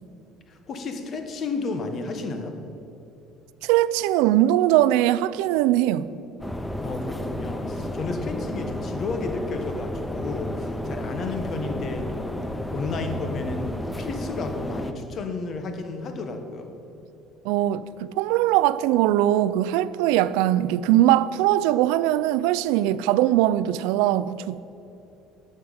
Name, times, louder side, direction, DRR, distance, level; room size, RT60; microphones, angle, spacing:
voice 1, 0.5-2.6 6.8-12.4 12.7-16.8, left 3 dB, 35° left, 1.4 m, -32 dB
voice 2, 3.6-6.1 17.4-24.6, right 13 dB, 85° right, 0.4 m, -21 dB
sound 1, 6.4-14.9, left 1 dB, 5° left, 0.6 m, -32 dB
12.0 x 6.3 x 9.1 m
cardioid pair, 150°, 0 cm